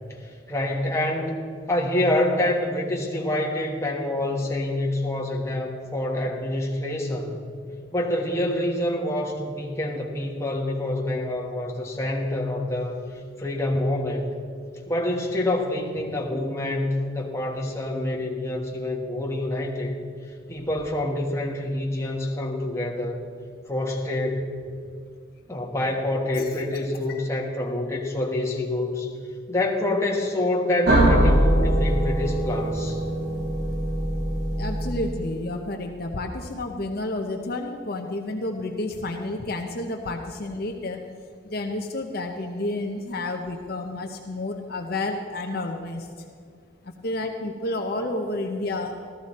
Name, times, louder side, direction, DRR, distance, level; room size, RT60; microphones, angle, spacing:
voice 1, 0.2-7.4 7.9-14.4 14.9-20.0 20.5-23.2 23.7-24.5 25.5-29.1 29.5-33.0, left 1 dB, 15° left, -1 dB, 1.3 m, -27 dB
sound 1, 30.9-35.6, right 1 dB, 50° right, 2.6 m, -22 dB
voice 2, 34.6-41.0 41.5-46.1 46.8-49.0, left 2 dB, 50° left, 3 dB, 0.8 m, -30 dB
14.0 x 14.0 x 4.2 m, 2.2 s
head